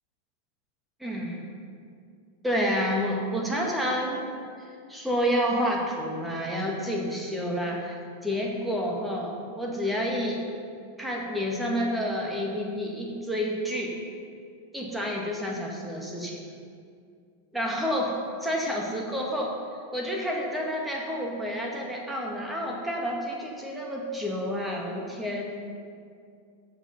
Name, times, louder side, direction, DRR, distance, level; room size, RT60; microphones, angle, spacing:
voice 1, 1.0-1.4 2.4-4.2 4.6-7.9 8.2-10.4 11.0-13.9 14.7-16.4 17.5-19.5 19.9-25.5, equal, 5° right, -1 dB, 1.8 m, -29 dB
14.0 x 5.2 x 5.6 m, 2.3 s
figure-of-eight pair, 90°, 0 cm